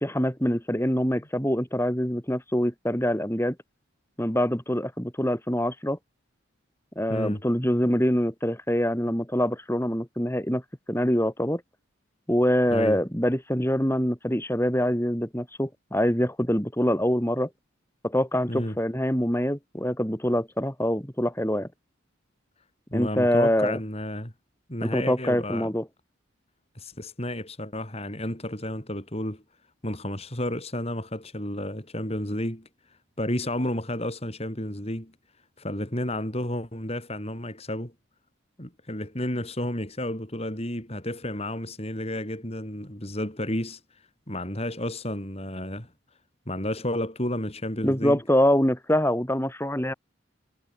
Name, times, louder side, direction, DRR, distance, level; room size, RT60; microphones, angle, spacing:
voice 1, 0.0-3.6 4.2-6.0 7.0-10.6 10.9-11.6 12.3-17.5 18.0-21.7 22.9-23.8 24.8-25.9 47.8-49.9, equal, 10° left, 3.6 m, -25 dB
voice 2, 7.1-7.4 12.7-13.0 18.5-18.8 22.9-24.3 24.7-25.7 26.7-29.4 29.8-32.7 33.2-35.1 35.6-37.9 38.6-43.8 44.3-45.9 46.5-48.2, left 1 dB, 30° left, 4.4 m, -31 dB
head